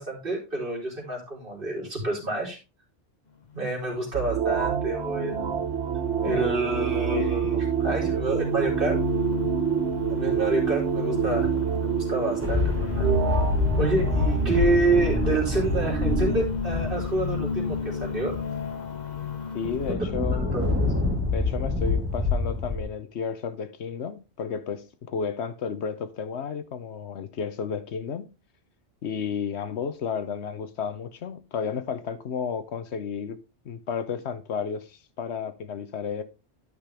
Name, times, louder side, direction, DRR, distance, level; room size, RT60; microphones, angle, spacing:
voice 1, 0.0-2.6 3.5-5.5 6.2-9.0 10.1-13.1 13.8-18.4 19.9-20.0 20.5-20.9, right 2 dB, 50° right, 3.6 m, -28 dB
sound 1, 3.4-19.9, left 7 dB, 40° left, 1.4 m, -34 dB
sound 2, 4.1-16.4, right 8 dB, 75° right, 1.1 m, -27 dB
sound 3, 12.4-18.6 19.1-19.2 19.7-22.8, left 3 dB, 10° right, 2.9 m, -27 dB
voice 2, 19.5-20.6 21.3-28.3 29.0-33.4 33.6-36.2, left 6 dB, 70° left, 1.1 m, -32 dB
11.5 x 5.8 x 3.4 m
omnidirectional pair, 1.2 m